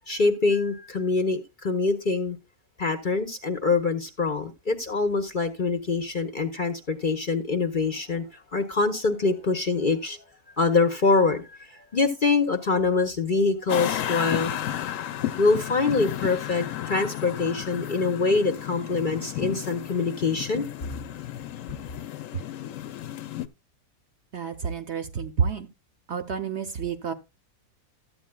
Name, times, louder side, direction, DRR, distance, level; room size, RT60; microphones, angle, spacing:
voice 1, 0.1-2.4 2.8-10.2 10.6-14.5 15.4-20.7, left 4 dB, 40° left, 0.8 m, -24 dB
sound 1, 13.7-23.5, left 12 dB, 65° left, 0.9 m, -33 dB
voice 2, 24.3-25.7 26.1-27.1, right 6 dB, 55° right, 0.9 m, -29 dB
13.5 x 8.6 x 2.2 m
omnidirectional pair, 1.6 m